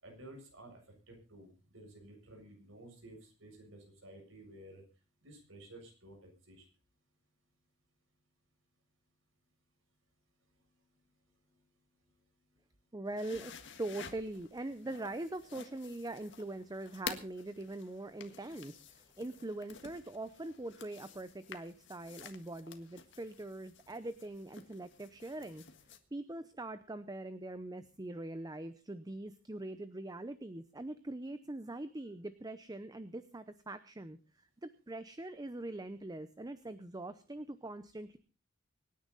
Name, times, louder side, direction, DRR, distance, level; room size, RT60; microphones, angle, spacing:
voice 1, 0.0-0.8 1.1-4.8 5.2-6.7, right 1 dB, 70° right, 2 dB, 7.2 m, -53 dB
voice 2, 12.9-13.5 13.8-25.6 26.1-34.2 34.6-38.2, right 2 dB, 20° right, 12 dB, 0.7 m, -42 dB
sound 1, 13.1-26.0, left 6 dB, 65° left, 1.7 m, -51 dB
25.0 x 10.0 x 4.0 m, 0.34 s
head